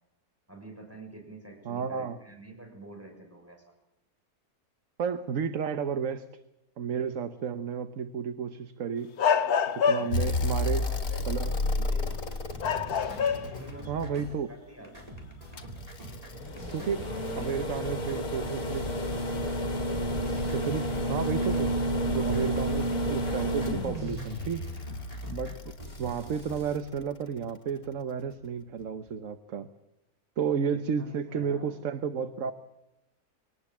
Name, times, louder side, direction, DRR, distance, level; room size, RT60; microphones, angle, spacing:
voice 1, 0.5-3.6 10.0-12.3 13.1-15.1 17.0-18.9 30.7-31.7, right 1 dB, 10° right, 2 dB, 6.2 m, -47 dB
voice 2, 1.6-2.2 5.0-6.3 6.8-9.1 9.7-10.9 11.3-11.5 13.9-14.5 16.7-17.1 17.3-18.8 20.5-21.8 22.1-24.7 25.3-29.7 30.4-32.5, right 6 dB, 60° right, 10 dB, 1.4 m, -32 dB
sound 1, 9.2-10.4 11.9-12.1 12.6-13.7 14.1-14.2 16.6-16.7 18.3-18.6, left 7 dB, 90° left, 1.6 m, -26 dB
sound 2, 10.1-14.3 15.6-26.8 28.3-28.4, left 1 dB, 60° left, 2.3 m, -31 dB
sound 3, 12.1-14.6 14.8-22.0 22.2-26.8, right 1 dB, 25° right, 4.5 m, -45 dB
24.0 x 19.0 x 7.4 m, 0.94 s
omnidirectional pair, 1.6 m